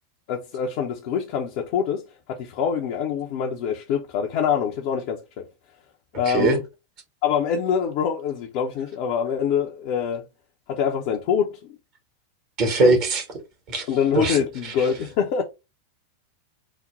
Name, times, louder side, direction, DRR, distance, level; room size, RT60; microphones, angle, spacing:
voice 1, 0.3-5.5 6.1-6.6 7.2-10.2 10.7-11.8 12.8-13.0 13.9-15.4, left 7 dB, 45° left, 0.6 m, -25 dB
voice 2, 6.3-6.6 12.6-13.2 13.7-13.9 14.1-14.4 14.6-14.7, right 3 dB, 40° right, 1.3 m, -20 dB
4.1 x 2.1 x 3.6 m
figure-of-eight pair, 90°, 0 cm